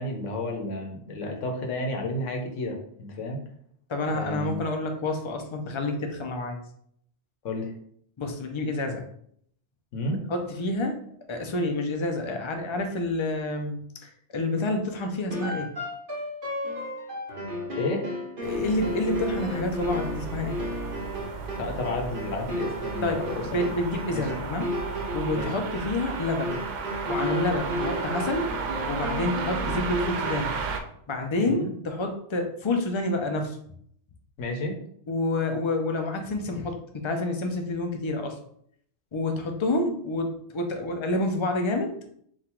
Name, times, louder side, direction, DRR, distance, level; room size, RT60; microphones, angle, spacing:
voice 1, 0.0-3.4 4.1-4.6 7.4-7.7 9.9-10.2 17.8-18.1 21.6-23.7 24.1-24.2 25.3-25.5 31.5-31.7 34.4-34.8, left 2 dB, 80° left, 2 dB, 1.2 m, -31 dB
voice 2, 3.9-6.6 8.2-9.1 10.3-10.9 11.3-13.8 14.0-15.7 18.4-20.6 23.0-23.3 23.5-24.7 25.1-26.6 27.1-28.5 28.9-30.6 31.1-33.6 35.1-38.4 39.1-42.0, left 2 dB, 40° left, 4 dB, 0.4 m, -28 dB
sound 1, 15.3-30.6, left 1 dB, 50° right, 1.1 m, -34 dB
sound 2, 18.4-30.8, right 5 dB, 80° right, 0.9 m, -34 dB
3.8 x 2.4 x 4.4 m, 0.66 s
omnidirectional pair, 1.2 m